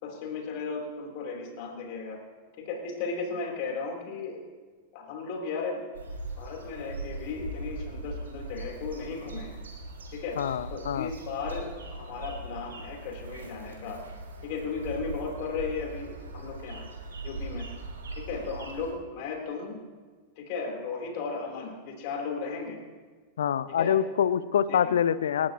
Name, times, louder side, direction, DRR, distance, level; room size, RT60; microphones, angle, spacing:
voice 1, 0.0-2.2 2.6-4.4 4.9-5.8 6.4-9.6 10.1-10.4 10.7-14.0 14.4-16.9 17.2-17.7 18.2-19.8 20.4-22.8 23.8-23.9 24.7-25.0, left 4 dB, 45° left, 1 dB, 3.7 m, -35 dB
sound 1, 5.9-18.9, right 2 dB, 65° right, 3.0 m, -40 dB
voice 2, 10.4-11.1 23.4-25.5, left 9 dB, 65° left, 17 dB, 0.6 m, -25 dB
28.0 x 12.5 x 3.0 m, 1.4 s
figure-of-eight pair, 90°, 0 cm